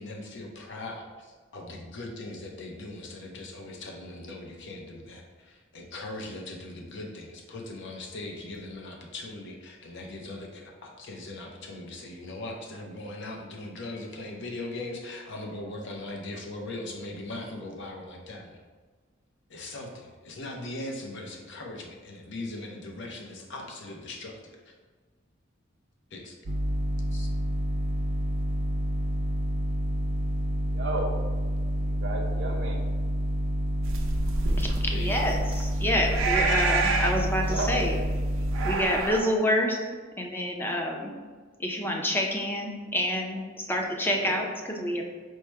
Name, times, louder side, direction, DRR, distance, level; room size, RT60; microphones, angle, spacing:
voice 1, 0.0-18.6 19.5-24.7 26.1-26.4 27.1-27.3 34.9-35.1, left 2 dB, 65° left, 1 dB, 0.7 m, -40 dB
sound 1, 26.5-38.8, equal, 40° right, 0.4 m, -28 dB
voice 2, 30.7-31.1 31.7-32.8 37.5-37.9 44.0-44.4, right 2 dB, 60° right, 1 dB, 0.8 m, -33 dB
sound 2, 33.8-39.2, right 3 dB, 90° right, 0.6 m, -29 dB
voice 3, 34.6-38.0 38.6-39.8 40.2-41.1 41.6-45.0, left 1 dB, 10° left, 0 dB, 0.5 m, -28 dB
4.6 x 2.1 x 4.5 m, 1.4 s
head